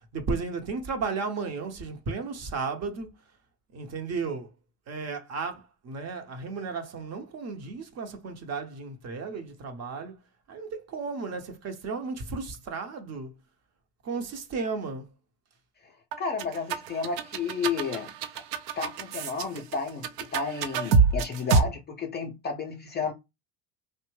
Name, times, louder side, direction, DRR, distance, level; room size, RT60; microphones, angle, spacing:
voice 1, 0.0-3.1 3.7-4.5 4.9-10.2 10.5-13.3 14.0-15.1, right 4 dB, 35° right, 0.7 m, -34 dB
voice 2, 15.8-18.4 18.8-23.1, left 5 dB, 25° left, 0.4 m, -32 dB
sound 1, 16.1-21.6, right 5 dB, 70° right, 0.6 m, -26 dB
2.7 x 2.1 x 3.1 m
hypercardioid pair, 80°, 47 cm